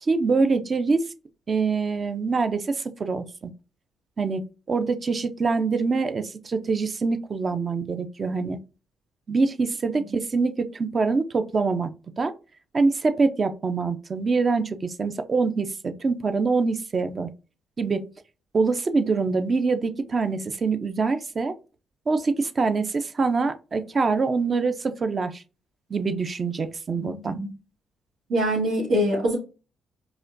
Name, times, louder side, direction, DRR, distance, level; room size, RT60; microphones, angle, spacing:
voice 1, 0.0-1.1 1.5-3.5 4.2-8.6 9.3-11.9 12.2-12.3 12.7-17.3 17.8-18.1 18.5-21.5 22.1-25.4 25.9-27.4, right 4 dB, 35° right, 0.5 m, -24 dB
voice 2, 27.0-27.5 28.3-29.4, equal, 70° right, 1.5 m, -24 dB
4.9 x 2.2 x 2.5 m
cardioid pair, 90°, 0 cm